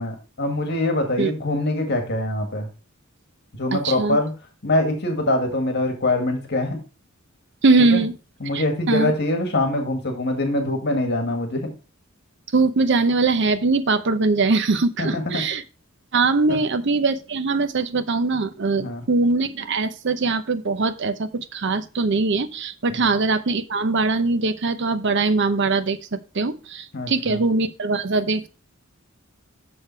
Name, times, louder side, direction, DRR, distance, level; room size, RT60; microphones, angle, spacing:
voice 1, 0.0-2.7 3.5-4.3 4.6-6.8 7.9-8.0 8.4-11.7 15.0-15.2 16.5-16.6 18.8-19.0 22.9-23.0 26.9-27.4, left 1 dB, 55° left, 4 dB, 1.7 m, -24 dB
voice 2, 3.7-4.2 7.6-8.1 8.5-9.1 12.5-15.6 16.1-28.5, right 3 dB, 55° right, 12 dB, 0.7 m, -21 dB
6.8 x 6.5 x 4.4 m, 0.33 s
head